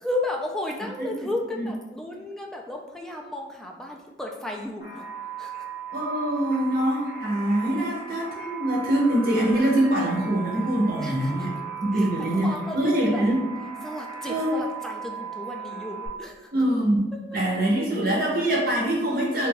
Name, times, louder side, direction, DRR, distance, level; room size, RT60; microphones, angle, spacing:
voice 1, 0.0-5.0 5.4-5.7 11.0-11.5 11.9-13.2 13.8-16.5 17.8-17.9, left 1 dB, 5° left, 0 dB, 0.3 m, -34 dB
sound 1, 4.8-16.1, right 7 dB, 60° left, 1.3 m, -37 dB
voice 2, 5.9-11.5 11.8-13.4 14.3-14.5 16.5-17.1 17.3-19.5, right 1 dB, 55° right, -3 dB, 0.8 m, -24 dB
2.7 x 2.5 x 3.8 m, 1.0 s
head